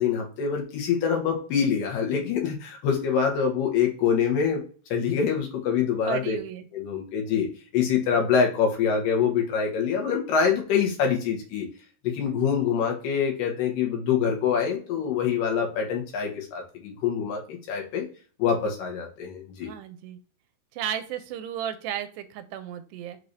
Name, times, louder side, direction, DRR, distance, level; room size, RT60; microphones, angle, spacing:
voice 1, 0.0-4.6 4.9-6.4 6.7-7.5 7.7-11.7 12.0-18.1 18.4-19.7, left 7 dB, 75° left, 1 dB, 2.6 m, -25 dB
voice 2, 6.1-6.7 19.6-20.2 20.7-23.2, right 10 dB, 90° right, 10 dB, 2.4 m, -34 dB
6.3 x 3.2 x 2.6 m, 0.41 s
omnidirectional pair, 4.1 m